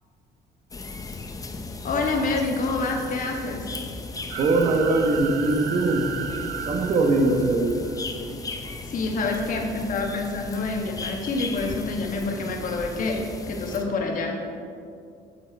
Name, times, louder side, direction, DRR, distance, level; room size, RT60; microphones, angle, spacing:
sound 1, 0.7-13.8, left 3 dB, 20° left, 0.7 m, -37 dB
voice 1, 1.8-3.7 8.9-14.4, left 3 dB, 55° left, 1 dB, 1.4 m, -27 dB
sound 2, 4.3-8.0, right 9 dB, 90° right, 0.5 m, -35 dB
voice 2, 4.4-6.1 6.7-7.8, right 2 dB, 45° right, 3 dB, 1.1 m, -21 dB
8.6 x 8.5 x 3.4 m, 2.4 s
cardioid pair, 110°, 17 cm